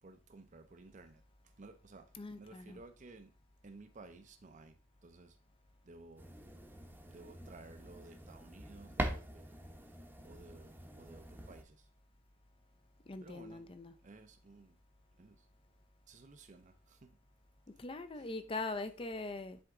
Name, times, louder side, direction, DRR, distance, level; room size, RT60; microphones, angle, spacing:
voice 1, 0.0-3.3 3.6-5.4 5.8-6.3 7.1-9.6 10.2-11.9 13.2-13.7 14.0-14.8 15.2-15.5 16.1-17.2 18.1-18.3, right 3 dB, 40° right, 0.6 m, -56 dB
voice 2, 2.2-2.8 13.1-13.9 17.7-19.6, left 3 dB, 25° left, 0.5 m, -42 dB
sound 1, 6.2-11.6, right 1 dB, 10° right, 0.8 m, -44 dB
7.8 x 3.5 x 3.7 m
head